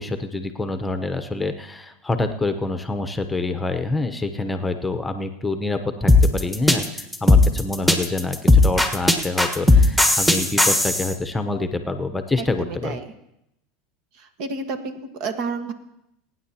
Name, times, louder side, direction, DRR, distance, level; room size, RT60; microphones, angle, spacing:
voice 1, 0.0-13.0, left 2 dB, 10° left, 8 dB, 0.9 m, -26 dB
sound 1, 6.1-11.1, left 2 dB, 5° right, 1.4 m, -16 dB
voice 2, 12.6-13.1 14.2-15.7, right 4 dB, 60° right, 8 dB, 1.4 m, -30 dB
23.0 x 9.5 x 2.9 m, 0.81 s
supercardioid pair, 110°, 0 cm